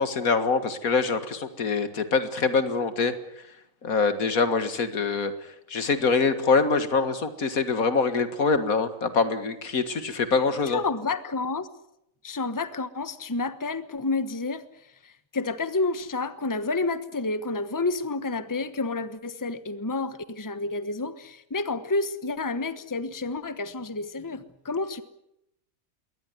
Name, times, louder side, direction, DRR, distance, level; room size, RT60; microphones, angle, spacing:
voice 1, 0.0-3.1 3.8-5.3 5.7-10.8, left 4 dB, 80° left, 11 dB, 2.2 m, -24 dB
voice 2, 10.7-11.7 12.2-14.6 15.0-25.0, left 3 dB, 15° left, 13 dB, 1.1 m, -30 dB
22.5 x 18.5 x 9.7 m, 0.80 s
omnidirectional pair, 1.5 m